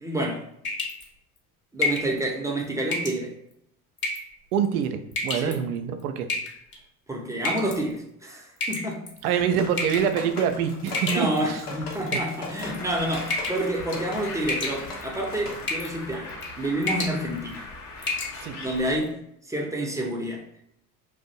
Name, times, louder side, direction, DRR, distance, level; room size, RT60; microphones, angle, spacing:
voice 1, 0.0-0.5 1.7-3.3 5.3-5.6 7.1-9.0 11.1-17.6 18.5-19.2 19.4-20.4, right 1 dB, 5° right, 0 dB, 0.6 m, -29 dB
sound 1, 0.6-1.1 1.8-2.1 2.9-3.2 4.0-4.3 5.1-5.5 6.3-6.8 7.4-7.8 8.6-9.2 9.8-10.1 10.9-11.6 12.1-12.8 13.3-13.7 13.9-14.2 14.5-15.1 15.7-15.9 16.3-16.5 16.8-17.2 17.5-17.6 18.0-18.3, left 3 dB, 25° left, 0.8 m, -29 dB
voice 2, 4.5-6.3 9.2-11.6 18.4-18.6, right 8 dB, 70° right, 7 dB, 0.5 m, -25 dB
sound 2, 9.6-15.7, left 3 dB, 85° left, 0.8 m, -39 dB
Bird, 12.6-18.9, left 3 dB, 50° left, 0.9 m, -40 dB
2.5 x 2.1 x 4.0 m, 0.76 s
figure-of-eight pair, 65°, 45 cm